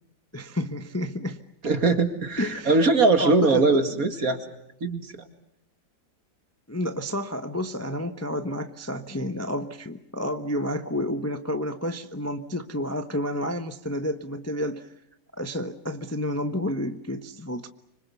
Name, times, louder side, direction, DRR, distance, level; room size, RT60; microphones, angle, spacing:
voice 1, 0.3-1.4 2.4-2.9 3.2-4.1 6.7-14.9 15.4-17.7, left 1 dB, 10° left, 8 dB, 0.7 m, -30 dB
voice 2, 1.6-4.4 4.8-5.1, right 3 dB, 55° right, 7 dB, 2.5 m, -21 dB
26.0 x 25.5 x 7.0 m, 0.82 s
omnidirectional pair, 1.8 m